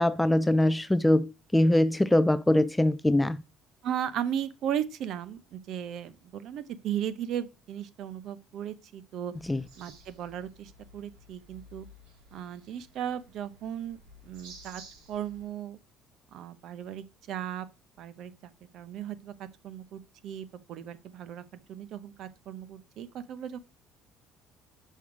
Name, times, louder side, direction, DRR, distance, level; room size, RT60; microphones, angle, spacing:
voice 1, 0.0-3.4 9.5-9.6, left 1 dB, 5° left, 0.3 m, -23 dB
voice 2, 3.8-9.3 9.8-11.9 12.3-14.0 14.2-14.8 15.1-15.8 16.3-17.7 18.0-19.3 19.6-23.6, right 10 dB, 55° right, 0.7 m, -36 dB
sound 1, 9.3-15.5, right 1 dB, 85° right, 4.1 m, -53 dB
6.3 x 5.6 x 4.7 m
cardioid pair, 155°, 0 cm